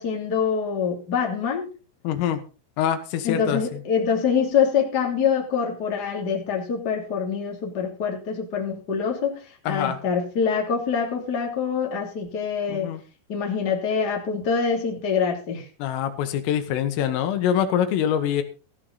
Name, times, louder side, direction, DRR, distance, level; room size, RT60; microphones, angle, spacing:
voice 1, 0.0-1.7 3.2-12.9 13.3-15.7, left 6 dB, 25° left, 0 dB, 2.7 m, -25 dB
voice 2, 2.0-2.4 2.8-3.8 9.7-10.0 12.7-13.0 15.8-18.4, left 9 dB, 90° left, 8 dB, 4.0 m, -24 dB
15.5 x 11.0 x 4.1 m, 0.35 s
omnidirectional pair, 5.7 m